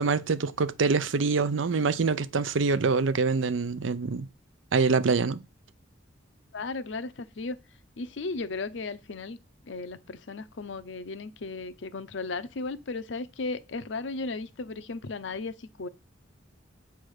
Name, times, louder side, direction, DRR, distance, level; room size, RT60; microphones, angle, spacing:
voice 1, 0.0-4.3 4.7-5.4, right 4 dB, 90° right, 0.6 m, -25 dB
voice 2, 6.5-7.6 8.0-9.4 9.7-15.9, left 3 dB, 70° left, 0.7 m, -35 dB
7.6 x 3.4 x 6.4 m
head